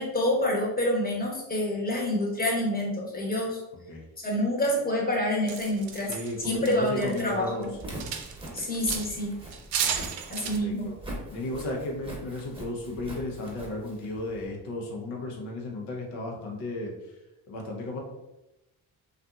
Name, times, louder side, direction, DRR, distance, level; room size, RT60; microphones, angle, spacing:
voice 1, 0.0-3.6 4.2-6.1 6.4-7.7 8.5-9.3 10.3-10.9, left 1 dB, 20° left, -2 dB, 1.0 m, -27 dB
sound 1, 5.5-7.3 7.6-9.2 9.5-10.6, right 8 dB, 75° right, 0.5 m, -33 dB
voice 2, 6.1-7.7 9.8-10.0 10.6-10.9 11.3-16.9 17.5-18.0, left 2 dB, 85° left, -1 dB, 0.8 m, -34 dB
Walk footsteps, 7.7-14.5, right 1 dB, 10° right, 1.0 m, -42 dB
2.6 x 2.5 x 2.3 m, 0.93 s
supercardioid pair, 65°, 46 cm